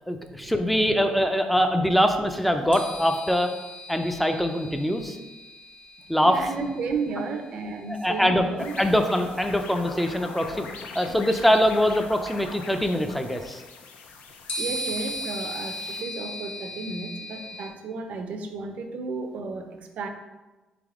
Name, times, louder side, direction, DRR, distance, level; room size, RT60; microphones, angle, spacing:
voice 1, 0.1-3.5 3.9-5.2 6.1-6.4 7.9-8.5 8.8-10.7 11.0-13.6, equal, ahead, 6 dB, 0.4 m, -23 dB
sound 1, 2.7-8.4 9.6-9.7 14.5-17.7, equal, 60° left, 0.9 m, -37 dB
voice 2, 6.2-8.7 14.6-20.1, right 4 dB, 65° right, 6 dB, 0.5 m, -33 dB
sound 2, 8.6-16.0, left 4 dB, 85° left, 0.5 m, -42 dB
4.0 x 3.4 x 3.5 m, 1.1 s
cardioid pair, 110°, 3 cm